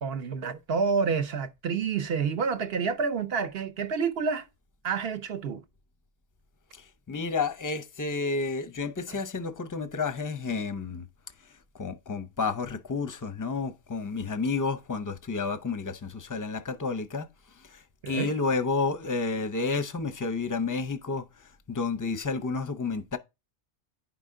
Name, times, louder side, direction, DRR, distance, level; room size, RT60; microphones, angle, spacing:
voice 1, 0.0-4.5 4.8-5.6 9.1-9.2 18.0-18.3, right 5 dB, 60° right, 1.0 m, -29 dB
voice 2, 6.7-11.1 11.7-17.3 17.6-23.2, left 4 dB, 20° left, 0.5 m, -31 dB
9.9 x 5.5 x 3.7 m
omnidirectional pair, 1.2 m